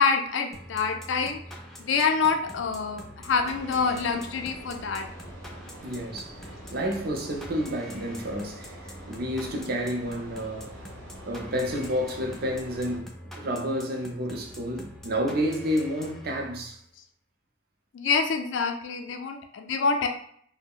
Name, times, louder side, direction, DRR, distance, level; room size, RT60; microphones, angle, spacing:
voice 1, 0.0-1.4 1.8-5.1 17.9-20.1, left 5 dB, 75° left, 0.4 m, -26 dB
sound 1, 0.5-16.8, equal, ahead, 0.4 m, -45 dB
sound 2, 3.3-13.0, right 1 dB, 85° right, 0.9 m, -46 dB
voice 2, 5.8-10.8 11.3-13.1 13.3-16.8, equal, 50° right, 0.5 m, -30 dB
2.3 x 2.0 x 3.6 m
head